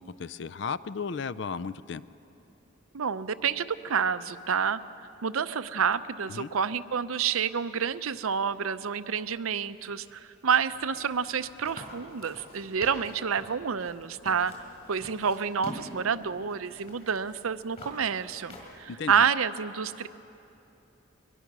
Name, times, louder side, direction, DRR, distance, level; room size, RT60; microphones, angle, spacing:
voice 1, 0.0-2.0 6.3-6.5 18.9-19.1, left 5 dB, 55° left, 16 dB, 0.4 m, -34 dB
voice 2, 2.9-4.8 5.2-20.1, right 7 dB, 85° right, 13 dB, 0.6 m, -29 dB
sound 1, 10.7-18.8, left 1 dB, 30° left, 4.1 m, -46 dB
23.0 x 21.0 x 6.1 m, 2.9 s
head